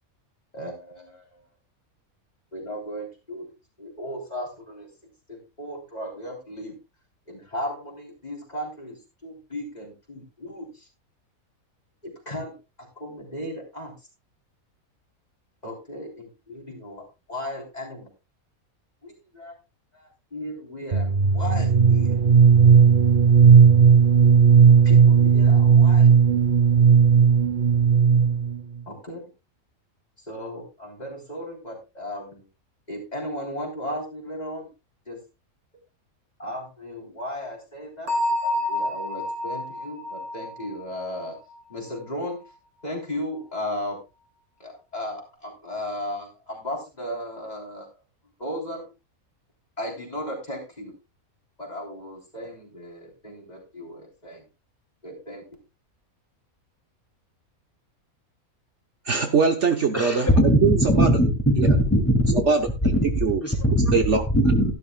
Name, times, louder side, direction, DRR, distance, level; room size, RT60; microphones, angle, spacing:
voice 1, 0.5-1.4 2.5-3.5 3.8-4.9 5.3-6.8 7.3-10.9 12.0-13.9 15.6-18.1 19.0-19.6 19.9-22.2 24.7-26.1 28.9-29.2 30.3-32.5 32.9-34.7 35.1-35.2 36.4-38.1 38.4-41.4 41.7-42.4 42.8-44.0 44.6-47.9 48.4-48.9 49.8-50.9 51.6-54.4 55.0-55.4, equal, 30° left, 0 dB, 3.9 m, -36 dB
sound 1, 20.9-28.6, right 6 dB, 40° right, 1.0 m, -15 dB
Bell, 38.1-41.7, left 1 dB, 80° right, 3.3 m, -29 dB
voice 2, 59.1-61.1 61.6-61.8 62.3-62.7 63.2-63.4 63.9-64.2, right 5 dB, 55° right, 5 dB, 1.3 m, -22 dB
voice 3, 59.9-61.3 61.6-62.2 63.4-63.9 64.3-64.6, equal, 10° left, 3 dB, 2.6 m, -19 dB
13.5 x 11.5 x 2.3 m, 0.27 s
omnidirectional pair, 1.5 m